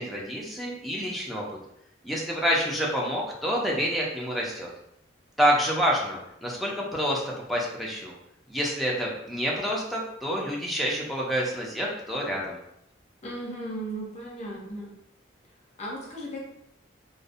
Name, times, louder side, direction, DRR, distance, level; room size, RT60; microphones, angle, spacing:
voice 1, 0.0-1.4 2.0-4.7 5.4-7.2 7.5-8.1 8.5-12.6, equal, ahead, -4 dB, 0.5 m, -28 dB
voice 2, 13.2-14.9 15.8-16.4, right 1 dB, 40° left, -3 dB, 0.7 m, -36 dB
2.6 x 2.0 x 2.6 m, 0.77 s
head